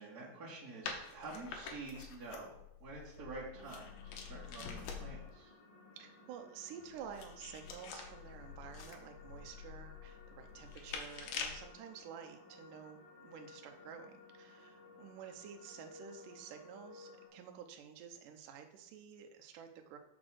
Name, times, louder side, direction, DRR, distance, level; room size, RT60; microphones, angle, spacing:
voice 1, 0.0-5.5, right 3 dB, 25° right, -7 dB, 2.6 m, -48 dB
sound 1, 0.8-5.3 6.8-11.7, left 6 dB, 70° left, 2.3 m, -46 dB
sound 2, 3.5-17.3, left 3 dB, 35° left, 2.8 m, -58 dB
voice 2, 5.9-20.0, right 8 dB, 75° right, 5 dB, 2.0 m, -51 dB
6.1 x 5.3 x 6.3 m, 0.81 s
omnidirectional pair, 4.6 m